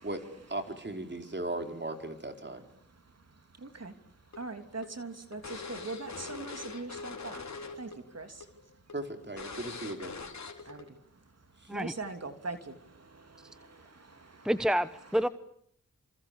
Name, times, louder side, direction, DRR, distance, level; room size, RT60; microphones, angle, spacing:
voice 1, 0.5-2.7 8.9-10.2 11.6-11.7, right 2 dB, 35° right, 4.7 m, -37 dB
voice 2, 3.6-3.9 4.4-7.5 7.7-8.4 10.6-11.0 11.7-14.5, right 3 dB, 50° right, 3.1 m, -42 dB
sound 1, 4.3-8.0 8.2-8.4 8.9-9.0 9.4-10.8, left 4 dB, 55° left, 4.0 m, -42 dB
voice 3, 14.4-15.3, equal, ahead, 1.1 m, -28 dB
29.0 x 27.0 x 7.1 m
cardioid pair, 50°, 32 cm